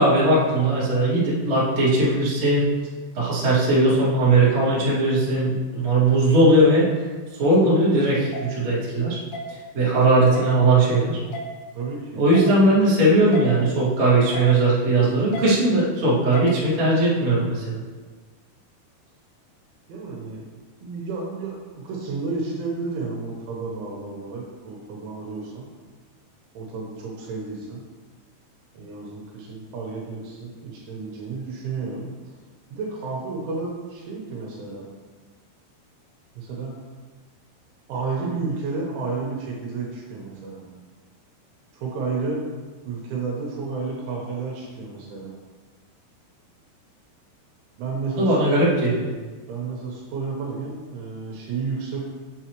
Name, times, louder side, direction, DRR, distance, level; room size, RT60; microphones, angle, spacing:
voice 1, 0.0-2.6 3.1-6.9 7.4-9.2 9.7-11.2 12.1-17.8 48.1-49.1, right 2 dB, 40° right, -9 dB, 2.9 m, -19 dB
sound 1, 8.3-8.4 9.3-9.4 10.3-10.5 11.3-11.4 12.3-12.5 13.3-13.5 14.3-14.5 15.3-15.5 16.3-16.5, left 1 dB, 80° left, 2.4 m, -32 dB
voice 2, 11.7-12.2 19.9-25.7 26.5-27.8 28.7-32.0 32.7-34.8 36.4-36.7 37.9-40.7 41.7-42.4 42.9-45.3 47.8-48.7 49.5-52.0, right 4 dB, 80° right, -2 dB, 3.4 m, -31 dB
7.6 x 7.0 x 3.0 m, 1.4 s
omnidirectional pair, 5.5 m